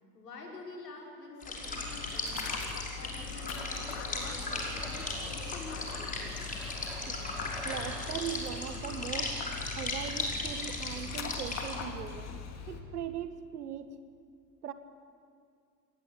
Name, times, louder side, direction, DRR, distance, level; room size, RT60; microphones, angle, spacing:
voice 1, 0.1-2.5 3.0-6.4 8.5-8.6, left 2 dB, 70° left, -1 dB, 5.7 m, -47 dB
sound 1, 1.4-11.8, left 2 dB, 15° left, 5.5 m, -37 dB
Dog, 1.5-12.8, left 6 dB, 30° left, 2.7 m, -42 dB
sound 2, 1.6-8.5, equal, ahead, 5.9 m, -48 dB
voice 2, 7.1-9.3 9.8-12.3 12.7-13.9 14.6-14.7, right 9 dB, 65° right, 11 dB, 1.7 m, -40 dB
27.5 x 20.0 x 8.3 m, 2.2 s
figure-of-eight pair, 75°, 49 cm